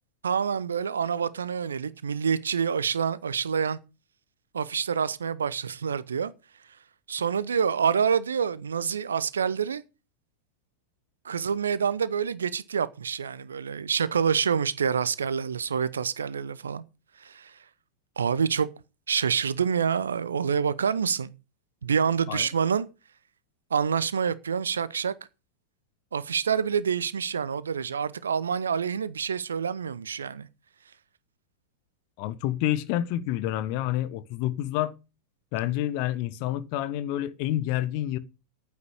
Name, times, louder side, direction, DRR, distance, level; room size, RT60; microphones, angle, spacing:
voice 1, 0.2-3.8 4.5-6.3 7.1-9.8 11.2-16.8 17.2-17.5 18.2-18.7 19.1-21.3 21.8-22.9 23.7-25.1 26.1-30.5, right 7 dB, 70° right, 0.8 m, -27 dB
voice 2, 32.2-34.9 35.5-38.2, left 13 dB, 45° left, 1.1 m, -28 dB
9.7 x 9.5 x 6.5 m
figure-of-eight pair, 90°, 0 cm